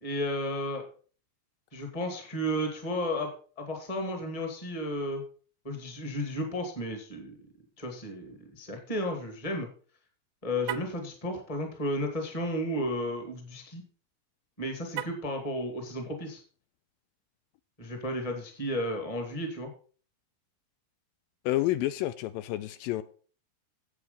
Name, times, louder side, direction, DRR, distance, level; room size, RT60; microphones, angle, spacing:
voice 1, 0.0-0.9 1.7-3.3 3.6-5.2 5.6-7.4 7.8-9.7 10.4-13.8 14.6-16.4 17.8-19.7, equal, 15° left, 1.4 m, -33 dB
Car, 10.6-11.0 14.9-15.4, right 14 dB, 80° right, 2.0 m, -37 dB
voice 2, 21.5-23.0, left 15 dB, 80° left, 2.2 m, -29 dB
8.4 x 8.1 x 5.3 m
omnidirectional pair, 4.2 m